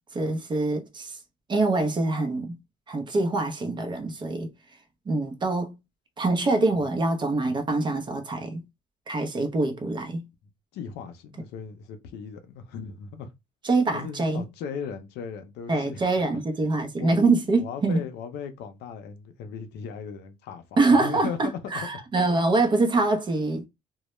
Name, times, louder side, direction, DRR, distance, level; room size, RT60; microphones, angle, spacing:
voice 1, 0.1-1.2 1.5-2.6 2.9-4.5 5.1-5.8 6.2-8.6 9.1-10.2 13.6-14.4 15.7-18.0 20.8-23.7, right 3 dB, 25° right, 0.6 m, -24 dB
voice 2, 10.7-13.3 13.9-16.4 17.0-17.2 17.6-21.9, left 6 dB, 80° left, 0.5 m, -37 dB
2.1 x 2.0 x 3.0 m
cardioid pair, 110°, 17 cm